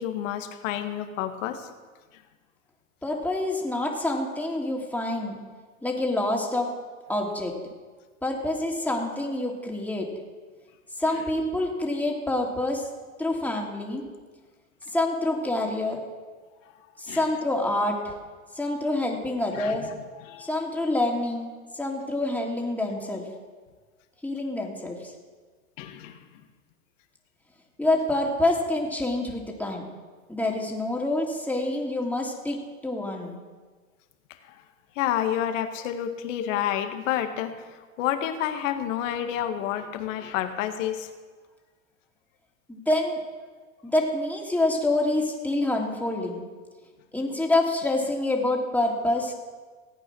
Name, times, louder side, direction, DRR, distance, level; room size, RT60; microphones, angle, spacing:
voice 1, 0.0-1.7 2.1-2.2 16.7-16.8 17.1-17.3 19.5-20.5 25.8-26.4 34.4-34.6 35.0-41.1, left 10 dB, 65° left, 7 dB, 1.8 m, -30 dB
voice 2, 3.0-5.4 5.8-6.7 7.1-7.5 8.2-10.1 11.0-12.8 13.2-14.0 14.9-16.0 17.0-18.1 18.5-19.9 20.4-23.2 24.2-25.1 27.8-29.8 30.3-32.6 32.8-33.4 42.7-43.2 43.8-46.4 47.1-49.3, left 2 dB, 5° left, -1 dB, 3.1 m, -27 dB
17.5 x 8.9 x 6.2 m, 1.4 s
hypercardioid pair, 95°, 41 cm